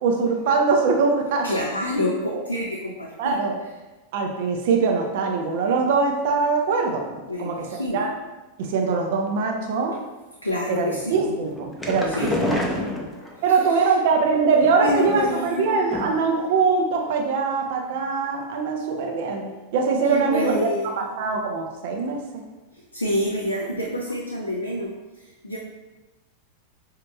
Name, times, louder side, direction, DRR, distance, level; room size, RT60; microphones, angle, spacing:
voice 1, 0.0-1.4 2.3-2.4 3.2-3.5 4.1-8.1 8.6-9.9 10.7-12.6 13.4-19.4 19.7-22.2, right 4 dB, 50° right, 2 dB, 0.6 m, -22 dB
voice 2, 1.4-3.4 7.3-8.1 10.4-11.4 12.0-12.4 13.5-13.9 14.8-15.8 20.1-21.0 22.9-24.9 25.2-25.6, left 1 dB, 80° left, -2 dB, 0.5 m, -28 dB
sound 1, 11.5-13.6 14.6-15.5 15.9-16.3 16.6-16.7 17.1-17.2, left 1 dB, 10° left, 0.6 m, -28 dB
5.1 x 2.8 x 2.3 m, 1.1 s
figure-of-eight pair, 90°, 0 cm